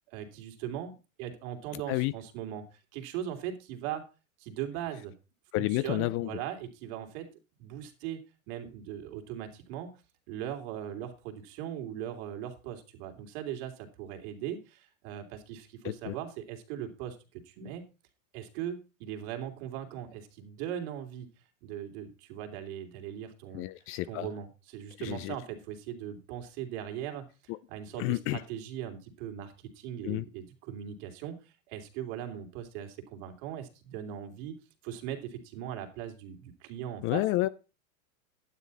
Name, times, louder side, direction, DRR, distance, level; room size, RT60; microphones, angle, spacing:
voice 1, 0.1-2.6 2.9-4.0 4.4-5.1 5.5-7.3 7.6-8.2 8.5-9.9 10.3-17.9 18.3-21.3 21.6-23.7 24.1-27.3 27.7-34.6 34.8-37.2, right 10 dB, 55° right, 3.2 m, -39 dB
voice 2, 5.5-6.3 15.8-16.1 23.5-24.3 25.0-25.4 28.0-28.4 30.0-30.2 37.0-37.5, left 18 dB, 30° left, 0.5 m, -30 dB
12.0 x 9.9 x 4.2 m
hypercardioid pair, 115°, 43 cm